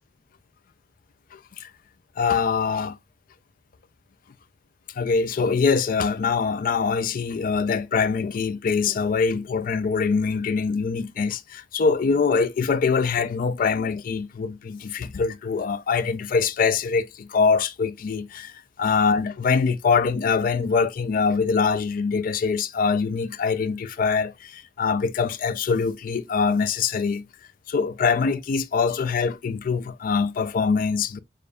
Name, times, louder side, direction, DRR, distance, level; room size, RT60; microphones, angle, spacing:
voice 1, 1.3-1.7 2.2-3.0 5.0-18.5 18.8-27.2 27.7-31.2, left 5 dB, 50° left, 0.4 m, -23 dB
6.6 x 2.6 x 2.3 m
head